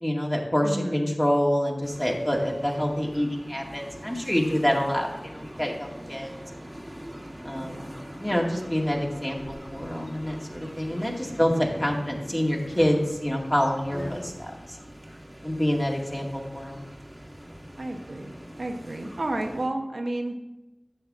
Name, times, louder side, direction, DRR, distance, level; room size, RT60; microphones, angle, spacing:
voice 1, 0.0-6.3 7.4-7.9 8.2-14.8 15.4-16.9, equal, 15° left, -1 dB, 2.1 m, -27 dB
voice 2, 0.6-1.1 7.6-8.0 15.7-15.8 16.1-16.2 17.8-18.3 18.6-20.3, right 1 dB, 75° right, 2 dB, 1.1 m, -32 dB
sound 1, 1.8-19.7, equal, 20° right, 1.7 m, -43 dB
sound 2, 9.4-9.9 10.4-12.1 12.6-14.4, equal, 75° left, 2.6 m, -43 dB
12.0 x 8.1 x 3.7 m, 1.0 s
wide cardioid pair, 50°, 0 cm